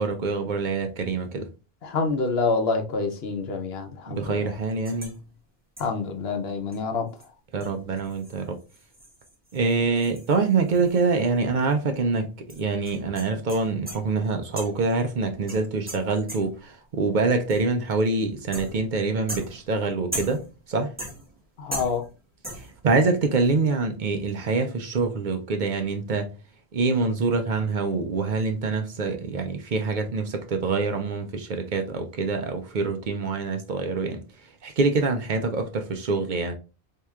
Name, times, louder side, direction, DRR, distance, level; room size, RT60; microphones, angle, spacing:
voice 1, 0.0-1.5 4.1-5.2 7.5-8.6 9.5-20.9 22.5-26.3 26.7-36.5, right 4 dB, 55° right, 0.6 m, -25 dB
voice 2, 1.8-4.3 5.8-7.1 21.6-22.0, left 4 dB, 80° left, 1.0 m, -27 dB
sound 1, 4.8-5.2 5.8-6.1 6.7-6.8 7.2-7.3 7.6-11.4 11.6-11.7 12.5-14.1 14.6-14.9 15.5-16.7 17.5-17.8 18.5-18.9 19.3-20.6 21.0-21.4 21.7-22.2 22.4-22.8, right 1 dB, 10° right, 1.1 m, -39 dB
4.2 x 2.8 x 2.3 m
omnidirectional pair, 1.0 m